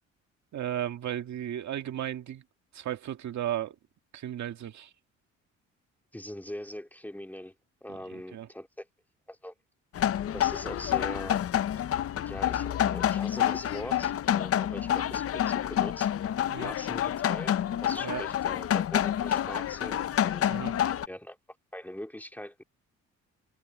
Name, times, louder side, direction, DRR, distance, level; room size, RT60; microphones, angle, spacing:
voice 1, 0.5-2.4 2.7-3.8 4.1-4.9 7.9-8.5 16.5-16.7 18.0-18.2 20.5-20.7, right 11 dB, 65° right, 2.1 m, -35 dB
voice 2, 6.1-7.5 7.8-8.9 9.3-9.5 10.3-11.4 12.2-16.1 16.6-17.5 17.8-20.5 21.1-21.4 21.7-22.6, left 1 dB, 5° left, 2.2 m, -41 dB
sound 1, 9.9-21.1, left 10 dB, 50° left, 0.6 m, -28 dB
cardioid pair, 90°, 30 cm